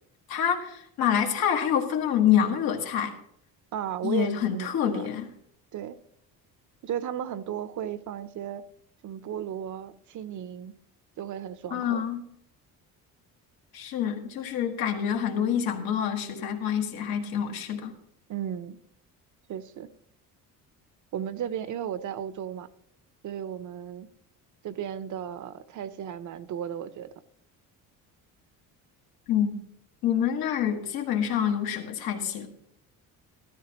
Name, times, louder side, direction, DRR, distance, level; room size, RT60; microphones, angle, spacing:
voice 1, 0.3-3.1 4.0-5.3 11.7-12.2 13.7-17.9 29.3-29.5 30.0-32.5, left 9 dB, 85° left, 3 dB, 1.7 m, -26 dB
voice 2, 3.7-5.1 5.7-6.0 6.8-8.7 9.0-10.8 11.2-12.0 18.3-18.8 19.5-19.9 21.1-22.7 23.2-24.1 24.6-27.1, right 9 dB, 55° right, 14 dB, 0.7 m, -35 dB
14.5 x 13.0 x 3.0 m, 0.73 s
cardioid pair, 110°, 36 cm